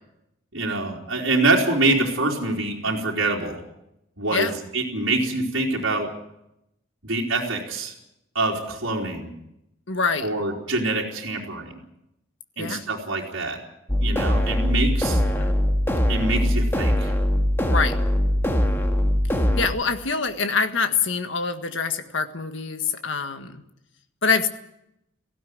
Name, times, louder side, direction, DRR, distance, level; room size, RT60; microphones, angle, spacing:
voice 1, 0.5-3.6 4.2-6.1 7.0-7.9 8.3-9.3 10.2-11.8 12.6-13.6 14.0-15.2 16.1-17.1, right 2 dB, 70° right, -5 dB, 3.7 m, -25 dB
voice 2, 9.9-10.3 12.6-12.8 15.1-15.5 17.7-18.0 19.6-23.6 24.2-24.5, left 5 dB, 65° left, 8 dB, 1.6 m, -25 dB
sound 1, 13.9-19.7, equal, 10° left, 1.9 m, -21 dB
17.5 x 16.0 x 9.4 m, 0.81 s
head